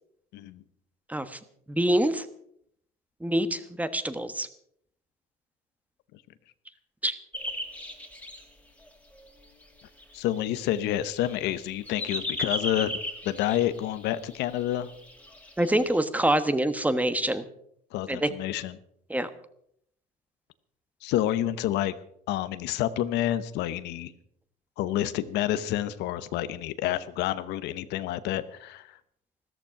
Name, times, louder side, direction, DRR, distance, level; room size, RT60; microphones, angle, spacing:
voice 1, 0.3-0.6 10.1-13.0 13.2-14.9 17.9-18.8 21.0-21.9 22.3-24.1 24.8-28.9, left 12 dB, 90° left, 14 dB, 0.9 m, -29 dB
voice 2, 1.1-1.4 1.7-2.3 3.2-4.5 7.0-7.1 15.6-17.4 18.1-18.3 19.1-19.3, right 1 dB, 10° right, 11 dB, 1.3 m, -25 dB
sound 1, 7.3-8.4 8.9-9.0 9.1-16.0, left 1 dB, 10° left, 2.7 m, -37 dB
14.5 x 13.5 x 5.9 m, 0.70 s
cardioid pair, 110°, 17 cm